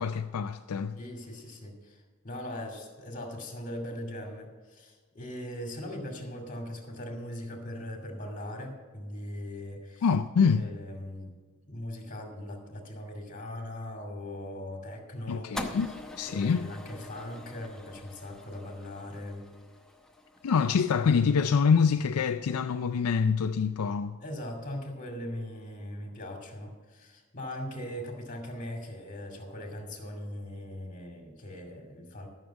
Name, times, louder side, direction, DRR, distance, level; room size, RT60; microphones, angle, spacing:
voice 1, 0.0-1.0 10.0-10.7 15.3-15.9 16.2-16.7 20.4-24.2, left 6 dB, 80° left, 0.4 m, -25 dB
voice 2, 0.9-10.0 10.5-11.3 11.7-15.5 16.3-19.5 24.2-32.3, left 1 dB, 35° left, 2.4 m, -40 dB
sound 1, 15.5-21.9, left 1 dB, 5° left, 0.8 m, -44 dB
sound 2, 20.5-21.1, left 1 dB, 75° right, 2.3 m, -52 dB
12.5 x 6.6 x 7.0 m
head